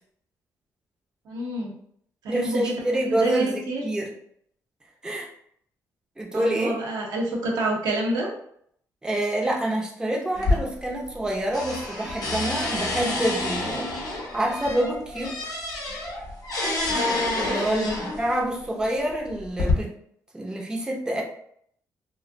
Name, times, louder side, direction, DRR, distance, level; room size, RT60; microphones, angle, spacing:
voice 1, 1.2-1.7 2.2-2.8 3.1-3.8 6.3-8.3 17.3-17.7, right 1 dB, 85° right, -2 dB, 0.7 m, -28 dB
voice 2, 2.3-4.1 5.0-5.3 6.2-6.8 9.0-13.9 14.3-15.5 17.4-19.9 20.3-21.2, right 1 dB, 10° right, -1 dB, 0.5 m, -27 dB
sound 1, 10.4-11.3 11.5-18.4 19.1-19.7, left 2 dB, 65° left, 0.6 m, -28 dB
2.4 x 2.0 x 2.5 m, 0.67 s
cardioid pair, 85°, 7 cm